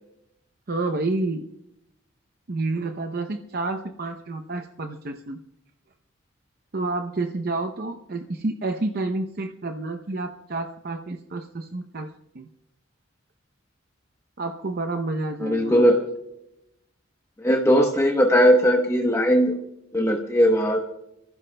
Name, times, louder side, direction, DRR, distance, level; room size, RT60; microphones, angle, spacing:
voice 1, 0.7-1.5 2.5-5.4 6.7-12.5 14.4-15.8, right 2 dB, 50° right, 7 dB, 0.7 m, -29 dB
voice 2, 15.4-16.0 17.4-19.6 19.9-20.8, equal, 15° left, 2 dB, 1.0 m, -19 dB
28.0 x 15.0 x 2.2 m, 0.84 s
head